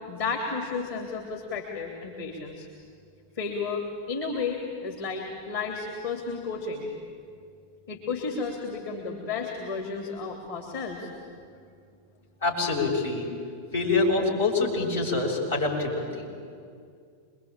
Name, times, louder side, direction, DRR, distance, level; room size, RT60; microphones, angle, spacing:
voice 1, 0.1-2.7 3.3-6.9 7.9-11.4, left 4 dB, 55° left, 1 dB, 3.0 m, -33 dB
voice 2, 12.4-13.3 13.7-16.4, left 3 dB, 80° left, -3 dB, 6.5 m, -26 dB
27.0 x 22.0 x 8.9 m, 2.3 s
figure-of-eight pair, 90°, 0 cm